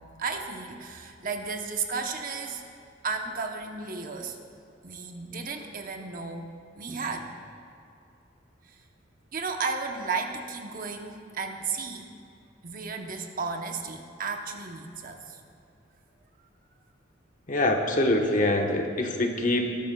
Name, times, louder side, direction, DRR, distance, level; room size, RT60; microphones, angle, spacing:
voice 1, 0.2-2.6 3.0-4.4 4.8-7.3 8.7-8.8 9.3-12.1 12.6-15.4, right 4 dB, 45° right, 4 dB, 0.8 m, -34 dB
voice 2, 17.5-19.7, left 1 dB, 40° left, 2 dB, 1.1 m, -24 dB
19.5 x 12.0 x 2.3 m, 2.5 s
head